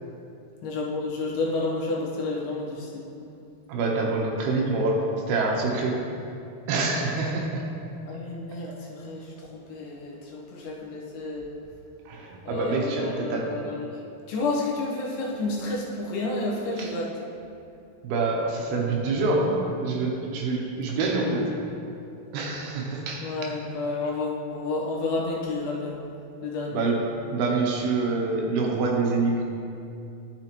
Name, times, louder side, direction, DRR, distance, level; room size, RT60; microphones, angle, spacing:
voice 1, 0.6-3.0 8.1-11.5 12.4-13.9 14.3-17.1 23.2-26.0 26.4-26.9, left 2 dB, 75° left, -3 dB, 3.0 m, -30 dB
voice 2, 3.7-6.0 6.7-7.7 12.1-13.6 16.8-16.9 18.0-21.6 22.3-23.3 26.7-29.4, right 3 dB, 75° right, 0 dB, 2.7 m, -26 dB
12.0 x 6.7 x 2.9 m, 2.6 s
omnidirectional pair, 4.7 m